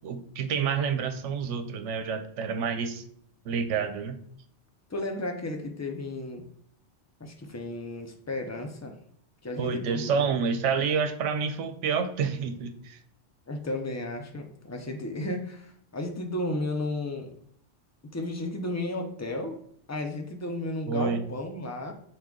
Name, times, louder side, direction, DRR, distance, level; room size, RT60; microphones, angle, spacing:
voice 1, 0.0-3.0 3.5-4.2 9.6-13.0 20.9-21.2, right 6 dB, 85° right, 8 dB, 1.0 m, -28 dB
voice 2, 4.9-6.5 7.2-9.0 9.4-10.2 13.5-17.3 18.1-19.6 19.9-21.9, left 1 dB, 25° left, 3 dB, 0.4 m, -33 dB
5.9 x 2.4 x 3.7 m, 0.64 s
omnidirectional pair, 1.2 m